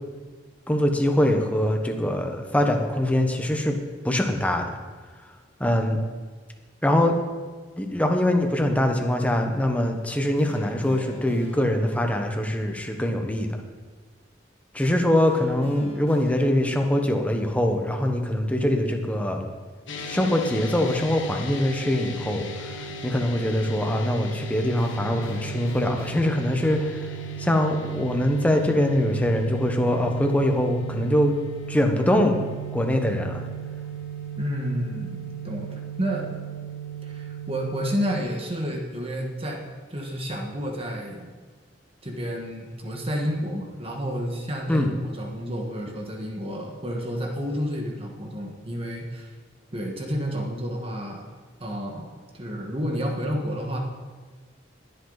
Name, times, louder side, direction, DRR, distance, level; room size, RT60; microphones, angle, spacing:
voice 1, 0.7-3.8 4.0-4.7 5.6-6.0 6.8-7.1 7.8-13.5 14.7-19.5 20.0-22.5 23.0-27.0 27.4-31.4 31.7-32.4 32.7-33.4 44.7-44.9, left 1 dB, 10° left, 3 dB, 1.1 m, -23 dB
sound 1, 10.4-12.2 15.2-17.0 20.0-21.9 24.8-27.0, left 1 dB, 30° left, 2.0 m, -45 dB
sound 2, 19.9-38.2, right 5 dB, 90° left, 1.6 m, -36 dB
voice 2, 34.4-36.3 37.0-39.6 39.9-41.3 42.0-49.3 49.7-51.3 51.6-52.1 52.3-53.8, equal, 30° right, 1 dB, 1.5 m, -30 dB
21.0 x 8.1 x 4.0 m, 1.4 s
head